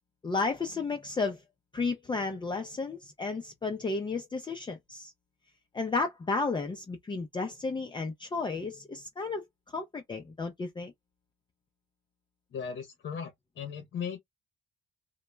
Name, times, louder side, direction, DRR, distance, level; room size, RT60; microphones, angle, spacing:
voice 1, 0.2-1.4 1.7-5.1 5.7-9.4 9.7-10.9, left 4 dB, 25° left, 0.5 m, -33 dB
voice 2, 12.5-14.2, left 7 dB, 60° left, 0.8 m, -37 dB
2.2 x 2.0 x 3.1 m
cardioid pair, 90°, 20 cm